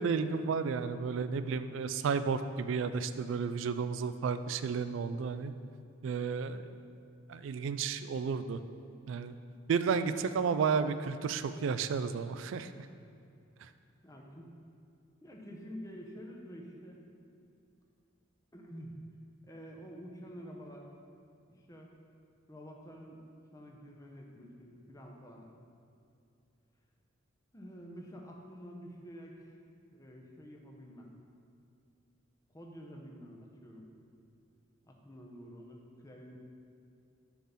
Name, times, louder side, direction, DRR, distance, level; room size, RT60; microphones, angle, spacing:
voice 1, 0.0-5.5 6.0-6.7 7.3-8.6 9.1-9.4 9.7-12.7 13.6-13.7, right 5 dB, 70° right, 12 dB, 0.3 m, -32 dB
voice 2, 14.0-14.5 15.2-17.0 18.5-19.0 19.4-20.9 21.5-21.9 22.5-23.2 23.5-25.5 27.5-29.6 29.9-31.1 32.5-33.9 34.9-36.4, equal, 15° left, 0 dB, 0.7 m, -49 dB
7.1 x 3.8 x 5.7 m, 2.5 s
head